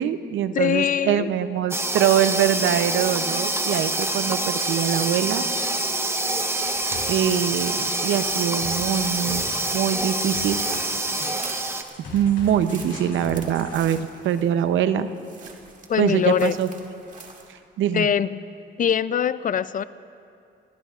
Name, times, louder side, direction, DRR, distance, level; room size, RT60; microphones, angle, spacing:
voice 1, 0.0-5.5 7.1-9.4 9.7-10.6 12.1-15.1 16.0-17.0 17.5-18.1, right 9 dB, 75° right, 11 dB, 0.7 m, -23 dB
voice 2, 0.5-1.3 15.9-16.5 17.9-18.4 18.8-19.8, left 8 dB, 45° left, 15 dB, 0.5 m, -22 dB
sound 1, 1.7-11.8, right 2 dB, 10° right, 1.0 m, -26 dB
sound 2, 3.9-17.5, right 4 dB, 40° right, 2.0 m, -46 dB
sound 3, 6.9-13.8, left 3 dB, 70° left, 2.8 m, -41 dB
27.0 x 17.5 x 2.5 m, 2.5 s
cardioid pair, 90°, 20 cm